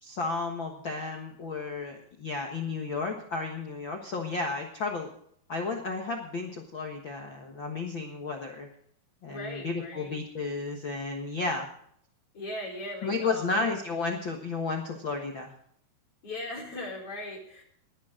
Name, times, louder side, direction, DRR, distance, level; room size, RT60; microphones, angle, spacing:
voice 1, 0.0-5.1 5.5-8.7 9.2-11.7 13.0-15.5, left 3 dB, 65° left, 2 dB, 1.2 m, -33 dB
voice 2, 9.3-10.1 12.3-13.8 16.2-17.6, left 1 dB, 35° left, -1 dB, 4.9 m, -39 dB
19.5 x 11.0 x 3.8 m, 0.66 s
omnidirectional pair, 4.5 m